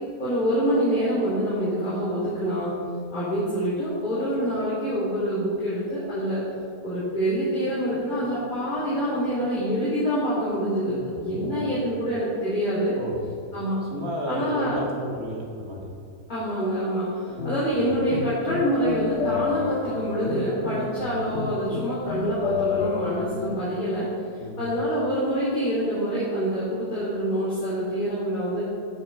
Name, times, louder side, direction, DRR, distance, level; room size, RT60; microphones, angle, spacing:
voice 1, 0.2-2.7 3.1-6.4 6.8-12.9 13.5-13.8 14.3-14.8 16.3-24.1 24.3-28.6, equal, 25° left, -11 dB, 3.1 m, -26 dB
voice 2, 11.3-11.7 12.9-13.1 13.9-15.9 17.6-17.8 21.0-21.1 24.4-24.7, equal, 60° right, -3 dB, 2.5 m, -33 dB
sound 1, 17.3-23.6, left 6 dB, 60° left, 0.8 m, -31 dB
12.0 x 7.0 x 4.6 m, 2.3 s
omnidirectional pair, 1.7 m